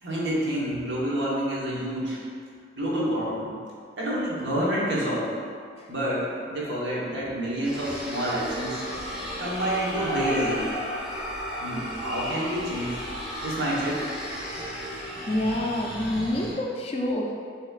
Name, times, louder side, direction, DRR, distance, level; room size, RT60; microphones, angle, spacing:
voice 1, 0.0-2.2 2.8-3.5 4.0-5.4 5.9-8.8 9.4-10.7 11.6-13.0 13.4-14.1 14.5-14.6, equal, 70° right, -6 dB, 1.1 m, -28 dB
sound 1, 7.6-16.5, equal, 5° right, 0.7 m, -34 dB
voice 2, 15.3-17.3, left 1 dB, 30° left, 0 dB, 0.3 m, -27 dB
7.0 x 2.9 x 2.4 m, 2.2 s
head